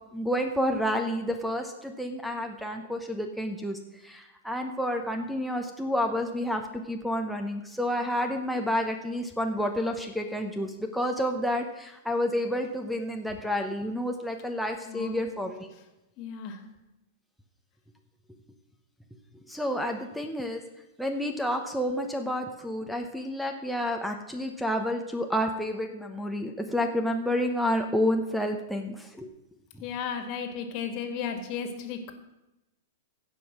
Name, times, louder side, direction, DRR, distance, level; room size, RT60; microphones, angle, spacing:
voice 1, 0.1-15.7 19.5-20.6 21.0-29.3, equal, ahead, 5 dB, 0.9 m, -30 dB
voice 2, 14.9-15.2 16.2-16.7 29.8-32.1, left 7 dB, 45° left, 7 dB, 1.9 m, -34 dB
16.0 x 5.4 x 6.1 m, 0.94 s
hypercardioid pair, 140°, 0 cm